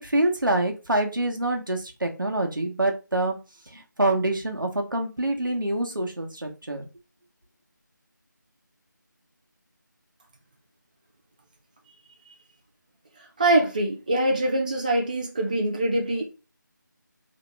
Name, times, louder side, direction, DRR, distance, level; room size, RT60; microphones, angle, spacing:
voice 1, 0.0-3.4 3.7-6.9, right 1 dB, 85° right, 1.1 m, -26 dB
voice 2, 13.4-16.2, right 1 dB, 25° right, 0.5 m, -23 dB
3.0 x 2.9 x 3.4 m
figure-of-eight pair, 165°, 11 cm